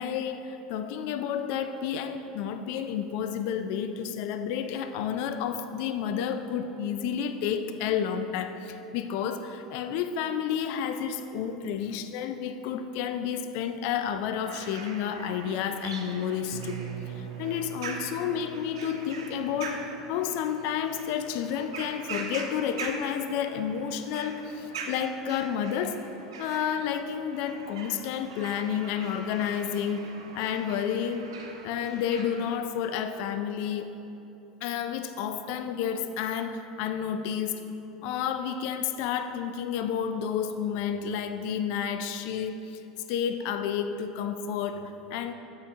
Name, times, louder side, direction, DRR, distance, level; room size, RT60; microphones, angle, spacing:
voice 1, 0.0-16.8 17.1-26.0 26.4-31.3 31.6-33.9 34.6-37.6 38.0-42.8 43.1-45.3, left 8 dB, 60° left, 9 dB, 0.4 m, -31 dB
sound 1, 14.4-32.6, right 4 dB, 80° right, 0.7 m, -42 dB
sound 2, 16.5-22.3, right 9 dB, 50° right, 0.4 m, -44 dB
8.1 x 5.1 x 3.6 m, 2.9 s
hypercardioid pair, 85°, 3 cm